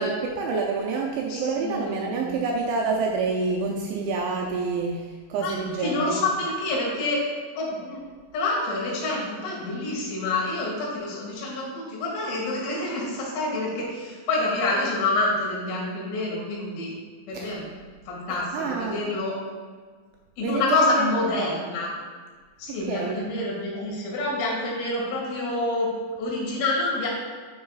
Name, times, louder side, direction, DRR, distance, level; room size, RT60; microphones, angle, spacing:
voice 1, 0.0-5.0 5.3-6.2 17.3-17.5 18.5-19.0 20.4-21.3 22.7-23.3, right 4 dB, 85° right, -1 dB, 2.7 m, -27 dB
voice 2, 1.3-2.3 5.4-7.2 7.6-8.0 8.3-16.9 17.3-17.7 18.1-19.4 20.4-21.9 22.6-25.9 26.2-27.1, left 2 dB, 90° left, -5 dB, 4.7 m, -27 dB
11.5 x 5.6 x 2.4 m, 1.5 s
omnidirectional pair, 5.8 m